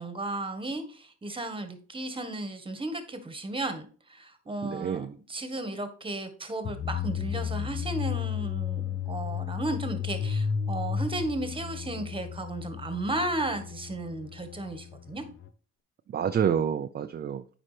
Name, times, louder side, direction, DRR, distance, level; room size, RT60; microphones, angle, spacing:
voice 1, 0.0-15.2, right 2 dB, 15° right, 8 dB, 1.3 m, -34 dB
voice 2, 4.6-5.2 16.1-17.5, right 8 dB, 35° right, 9 dB, 0.4 m, -28 dB
sound 1, 6.6-15.5, left 8 dB, 45° left, 0.7 m, -33 dB
8.7 x 5.1 x 3.2 m, 0.41 s
cardioid pair, 90°, 30 cm